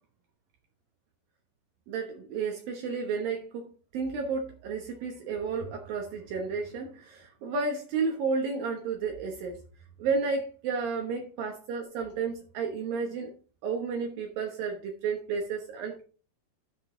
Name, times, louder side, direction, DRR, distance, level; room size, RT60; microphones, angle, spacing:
voice 1, 1.9-9.6 10.0-13.3 13.6-16.0, right 5 dB, 70° right, 2 dB, 2.7 m, -32 dB
12.5 x 5.4 x 3.8 m, 0.39 s
omnidirectional pair, 4.6 m